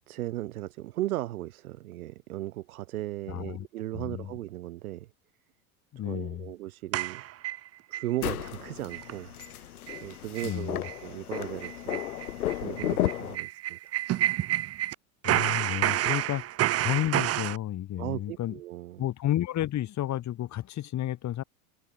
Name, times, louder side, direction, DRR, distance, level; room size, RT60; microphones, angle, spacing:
voice 1, 0.1-5.1 5.9-7.2 7.9-12.0 12.5-13.9 18.0-19.1, right 15 dB, 80° right, 3.3 m, -37 dB
voice 2, 3.3-3.7 3.9-4.3 5.9-6.5 10.4-10.8 15.2-16.4 16.8-18.5 19.0-21.4, left 13 dB, 40° left, 3.1 m, -31 dB
sound 1, 6.9-8.1 8.4-8.5 8.9-9.1 9.4-9.5 9.9-10.0 10.4-10.5 10.8-11.0 11.3-15.0 15.2-17.6, right 14 dB, 35° right, 0.8 m, -29 dB
sound 2, 8.2-13.4, left 13 dB, 90° left, 2.4 m, -33 dB
hypercardioid pair, 100°, 43 cm